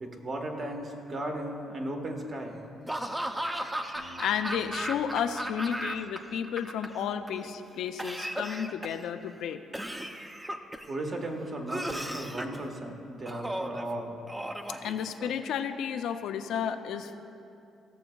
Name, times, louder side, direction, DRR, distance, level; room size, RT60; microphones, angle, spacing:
voice 1, 0.0-2.6 10.9-14.2, right 1 dB, 45° right, 2 dB, 1.2 m, -36 dB
Laughter / Cough, 2.9-6.2 6.4-7.3 8.0-9.1 9.7-10.9 11.7-12.6 13.3-13.8 14.3-15.5, right 1 dB, 10° right, 0.5 m, -35 dB
voice 2, 3.9-9.6 14.8-17.2, left 8 dB, 80° left, 7 dB, 0.4 m, -32 dB
Acoustic guitar, 3.9-7.0, right 1 dB, 85° right, 2.0 m, -55 dB
16.5 x 6.8 x 2.3 m, 2.7 s
cardioid pair, 90°, 0 cm